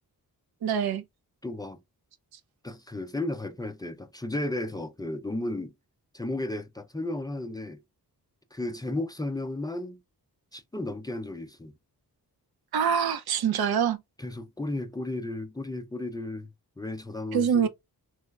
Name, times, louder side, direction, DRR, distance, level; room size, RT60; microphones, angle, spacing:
voice 1, 0.6-1.0 12.7-14.0 17.3-17.7, right 7 dB, 90° right, 0.6 m, -24 dB
voice 2, 1.4-1.8 2.6-5.7 6.1-7.8 8.5-10.0 10.5-11.7 14.2-16.5 16.8-17.7, left 2 dB, 10° left, 0.4 m, -34 dB
3.1 x 2.0 x 3.3 m
wide cardioid pair, 90°, 37 cm